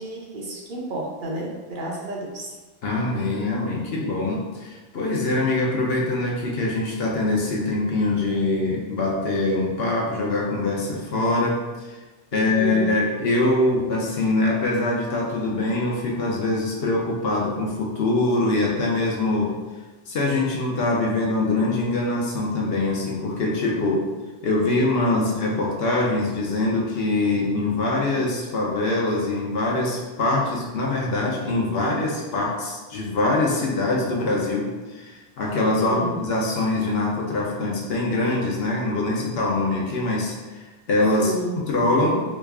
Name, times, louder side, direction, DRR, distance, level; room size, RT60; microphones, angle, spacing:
voice 1, 0.0-2.6 12.3-12.9 35.7-36.2 41.2-41.6, right 2 dB, 55° right, -2 dB, 0.7 m, -31 dB
voice 2, 2.8-11.6 11.9-12.0 12.3-19.5 20.1-24.0 24.4-42.2, left 2 dB, 70° left, -2 dB, 0.9 m, -23 dB
3.1 x 2.4 x 3.4 m, 1.2 s
omnidirectional pair, 1.1 m